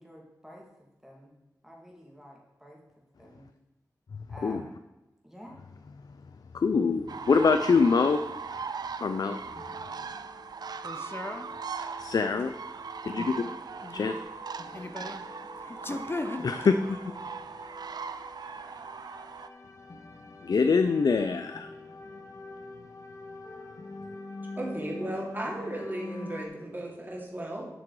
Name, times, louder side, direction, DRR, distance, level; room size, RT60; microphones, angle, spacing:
voice 1, 0.0-1.3 1.6-2.8 3.2-3.5 4.3-4.8 5.2-5.5, equal, 5° right, -2 dB, 2.3 m, -49 dB
voice 2, 6.5-8.2 9.0-9.4 12.1-12.5 13.0-13.5 13.9-14.1 16.4-17.0 20.4-21.7, left 5 dB, 70° left, 9 dB, 0.5 m, -24 dB
sound 1, 7.1-19.5, right 5 dB, 85° right, 0.5 m, -39 dB
sound 2, 9.6-26.5, left 2 dB, 50° left, 1.2 m, -46 dB
voice 3, 10.8-11.5 13.8-14.2 14.7-15.2 15.6-16.5, left 2 dB, 35° left, 8 dB, 0.8 m, -37 dB
voice 4, 24.6-27.7, right 1 dB, 30° right, -2 dB, 2.8 m, -35 dB
11.5 x 6.1 x 4.8 m, 0.98 s
wide cardioid pair, 75°, 7 cm